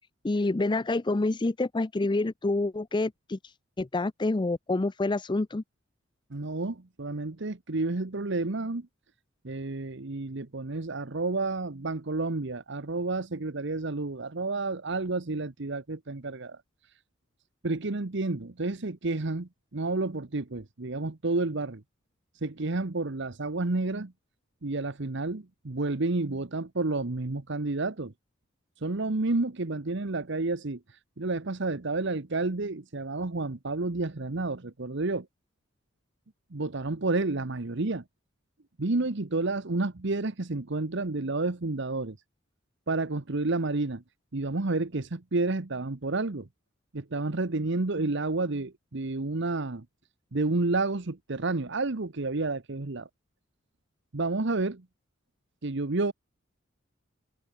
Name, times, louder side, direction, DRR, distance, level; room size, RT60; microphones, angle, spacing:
voice 1, 0.2-3.4 3.8-5.6, left 2 dB, 25° left, 0.5 m, -27 dB
voice 2, 6.3-8.9 9.4-16.6 17.6-21.8 22.4-24.1 24.6-28.1 28.8-30.8 31.2-35.3 36.5-38.0 38.8-42.2 42.9-44.0 44.3-46.5 46.9-49.8 50.3-53.1 54.1-54.8 55.6-56.1, right 3 dB, 60° right, 1.1 m, -30 dB
head